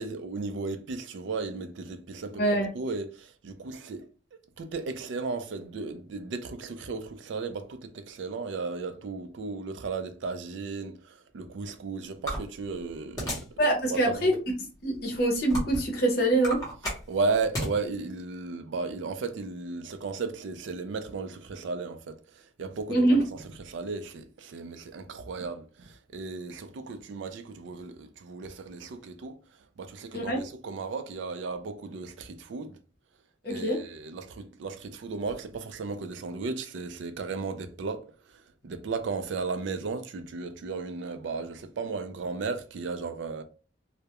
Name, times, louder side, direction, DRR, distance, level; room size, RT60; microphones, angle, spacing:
voice 1, 0.0-2.4 2.7-4.1 4.6-13.5 13.9-14.3 17.1-29.4 29.8-32.8 33.4-43.4, right 4 dB, 65° right, 0.4 m, -35 dB
voice 2, 2.4-2.7 13.6-14.3 14.8-16.6 22.9-23.2 30.1-30.4 33.4-33.8, right 1 dB, 50° left, 0.7 m, -24 dB
sound 1, 12.3-13.6 14.1-14.3 14.9-15.9 16.3-17.7, equal, 20° left, 0.8 m, -33 dB
2.3 x 2.1 x 2.8 m
head